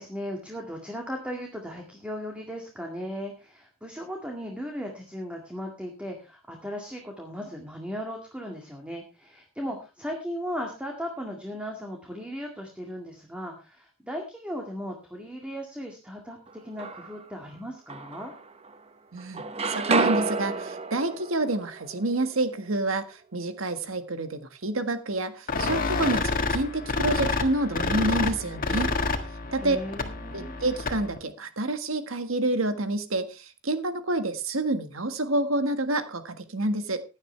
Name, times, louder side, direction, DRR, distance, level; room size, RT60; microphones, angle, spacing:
voice 1, 0.0-18.3 29.6-30.6, equal, 5° right, 1 dB, 2.1 m, -37 dB
sound 1, 16.5-17.3 17.9-18.9 19.2-23.1, right 3 dB, 30° right, 1.0 m, -31 dB
voice 2, 19.1-19.4 19.7-28.9 29.5-29.8 30.3-37.0, right 2 dB, 90° right, 9 dB, 1.6 m, -28 dB
sound 2, 25.5-31.2, left 3 dB, 45° left, 1.7 m, -28 dB
16.5 x 10.5 x 3.3 m, 0.30 s
head